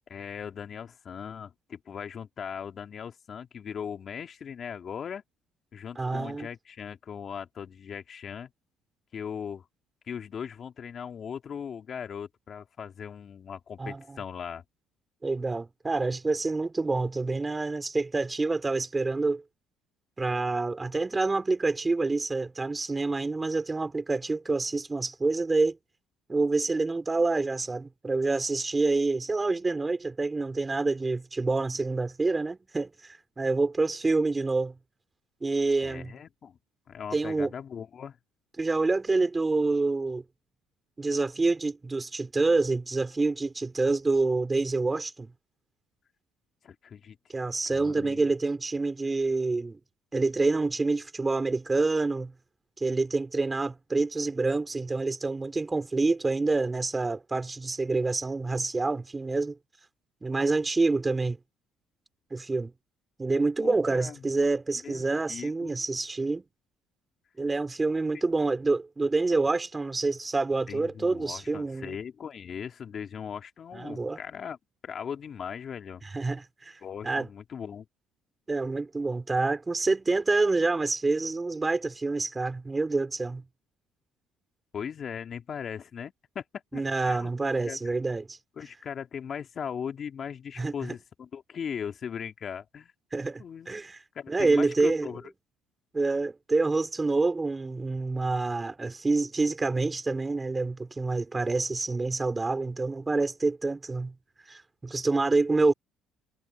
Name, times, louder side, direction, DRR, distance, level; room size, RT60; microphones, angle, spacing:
voice 1, 0.1-5.2 5.7-8.5 9.1-9.6 10.1-14.6 35.8-36.6 36.9-38.2 46.6-47.2 47.7-48.3 63.6-64.3 64.8-65.8 68.1-68.2 70.7-74.6 74.8-76.0 76.8-77.9 84.7-86.4 86.7-87.3 87.7-87.8 88.6-92.9 93.4-93.7 94.1-95.2, left 7 dB, 50° left, 2.8 m, -39 dB
voice 2, 6.0-6.5 13.8-14.2 15.2-19.4 20.2-25.8 26.3-34.7 35.4-36.1 37.1-37.5 38.6-40.2 41.0-45.3 47.3-49.8 50.1-52.3 52.8-59.6 60.2-61.4 62.3-62.7 63.2-66.4 67.4-72.0 73.7-74.2 76.0-77.3 78.5-83.4 86.7-88.4 90.6-90.7 93.1-94.0 94.3-95.1 95.9-104.1 104.5-105.7, right 3 dB, 20° right, 3.9 m, -27 dB
supercardioid pair, 80°, 0 cm